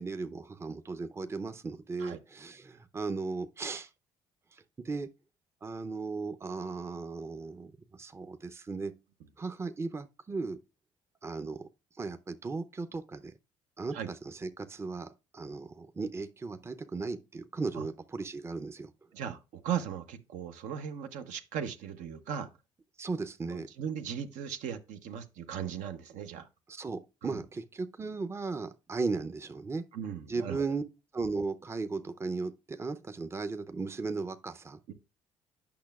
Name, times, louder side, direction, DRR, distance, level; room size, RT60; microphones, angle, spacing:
voice 1, 0.0-3.9 4.5-5.1 5.6-8.9 9.4-10.6 11.2-11.7 11.9-13.3 13.8-18.9 23.0-23.7 26.7-29.8 30.3-30.8 31.1-34.8, right 4 dB, 20° right, 0.6 m, -36 dB
voice 2, 19.1-22.5 23.5-26.5 27.2-27.4 29.9-30.6 34.9-35.0, right 8 dB, 75° right, 0.7 m, -37 dB
8.6 x 5.7 x 2.3 m
supercardioid pair, 65°, 13 cm